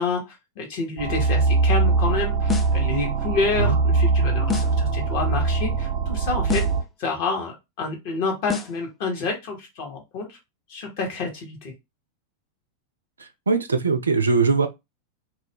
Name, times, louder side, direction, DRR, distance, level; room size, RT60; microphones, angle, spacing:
voice 1, 0.0-6.6 7.0-10.4 10.7-11.7, left 4 dB, 45° left, 1.1 m, -28 dB
sound 1, 1.0-6.8, right 4 dB, 40° right, 0.8 m, -22 dB
sound 2, 2.5-2.9 4.5-4.9 6.5-6.9 8.5-8.9, left 7 dB, 20° left, 0.4 m, -28 dB
voice 2, 13.2-14.7, right 4 dB, 75° right, 0.3 m, -21 dB
2.4 x 2.0 x 3.5 m
figure-of-eight pair, 90°, 0 cm